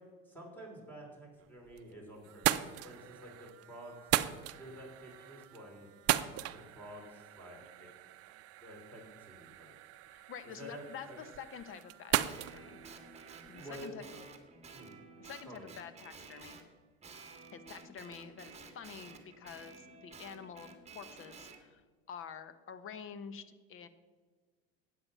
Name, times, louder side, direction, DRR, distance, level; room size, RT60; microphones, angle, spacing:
voice 1, 0.3-4.1 4.5-5.9 6.3-7.9 8.6-9.8 10.6-11.2 13.6-14.2 14.7-15.0 15.5-15.7, equal, 5° left, -1 dB, 3.7 m, -50 dB
sound 1, 1.4-1.9 2.2-13.9, right 14 dB, 50° right, 0.6 m, -38 dB
voice 2, 10.1-12.8 13.5-14.1 15.2-16.6 17.5-20.7 20.9-21.8 22.1-23.4 23.7-23.9, left 7 dB, 45° left, 12 dB, 1.2 m, -48 dB
Guitar, 12.2-16.7 17.0-21.6, right 4 dB, 20° right, 1.7 m, -53 dB
12.0 x 8.9 x 5.6 m, 1.4 s
supercardioid pair, 105°, 31 cm